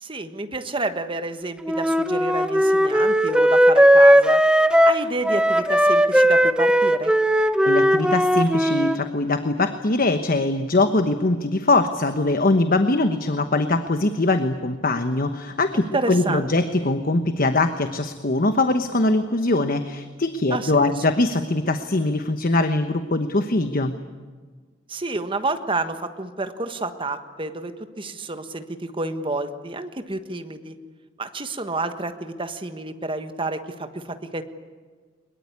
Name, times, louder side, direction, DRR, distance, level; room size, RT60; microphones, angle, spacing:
voice 1, 0.0-4.4 4.8-7.1 15.9-16.5 20.5-20.9 24.9-30.7 31.2-34.4, right 2 dB, 25° right, 8 dB, 1.4 m, -29 dB
Wind instrument woodwind instrument, 1.7-9.0, equal, 5° right, 0.8 m, -17 dB
voice 2, 7.6-23.9, left 2 dB, 50° left, 8 dB, 1.1 m, -22 dB
22.0 x 21.5 x 9.7 m, 1.5 s
head